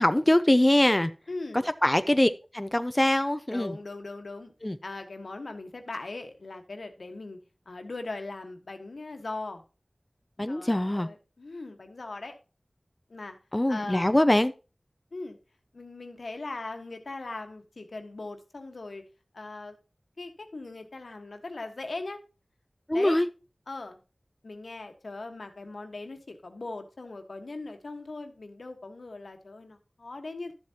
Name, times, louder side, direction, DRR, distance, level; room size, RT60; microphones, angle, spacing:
voice 1, 0.0-1.1 1.8-3.7 4.6-4.8 10.4-11.1 13.5-14.5 22.9-23.3, left 1 dB, 25° left, 0.5 m, -23 dB
voice 2, 1.3-1.7 3.5-4.5 4.8-7.4 7.6-9.6 10.5-12.4 13.1-13.4 13.7-14.3 15.1-15.4 15.7-19.1 19.3-19.8 20.2-22.2 22.9-23.2 23.7-24.0 24.4-30.5, left 2 dB, 85° left, 1.3 m, -39 dB
12.0 x 7.3 x 2.8 m
wide cardioid pair, 45°, 0 cm